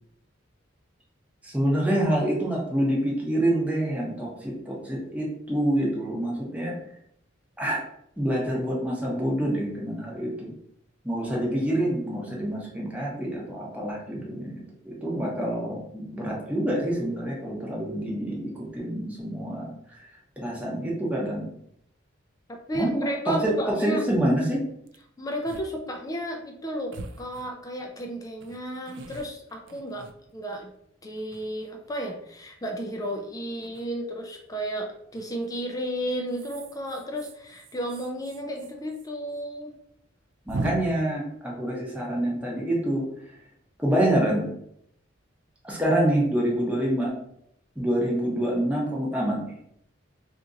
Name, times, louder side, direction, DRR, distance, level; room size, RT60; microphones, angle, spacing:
voice 1, 1.4-6.7 7.6-7.8 8.2-10.5 11.0-19.7 20.4-21.5 22.7-24.6 40.5-43.0 43.8-44.5 45.7-47.1 47.8-49.6, right 1 dB, 5° right, -4 dB, 0.8 m, -26 dB
voice 2, 22.7-24.0 25.2-30.1 30.3-30.7 31.0-39.7, equal, 20° left, 3 dB, 0.3 m, -33 dB
sound 1, 22.7-22.8 23.3-23.4 23.6-24.0 24.9-25.0 25.5-25.7 26.0-26.1 26.9-27.9 28.4-30.6 31.2-31.9 33.6-33.9 35.2-35.5 36.3-39.1 39.3-39.4 39.7-39.8 40.5-40.7, right 3 dB, 60° right, 0.3 m, -40 dB
2.9 x 2.5 x 3.7 m, 0.74 s
head